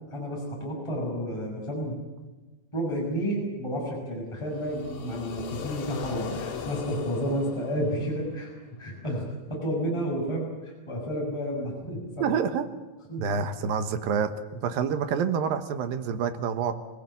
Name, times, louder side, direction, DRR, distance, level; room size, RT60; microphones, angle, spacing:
voice 1, 0.1-2.0 2.7-8.5 8.8-9.2 9.5-12.4 13.1-13.2, equal, 5° left, -2 dB, 6.1 m, -31 dB
sound 1, 4.4-8.5, left 6 dB, 80° left, 4.0 m, -38 dB
voice 2, 12.2-12.7 13.2-16.7, right 7 dB, 80° right, 9 dB, 3.0 m, -27 dB
25.5 x 17.5 x 8.5 m, 1.2 s
omnidirectional pair, 4.1 m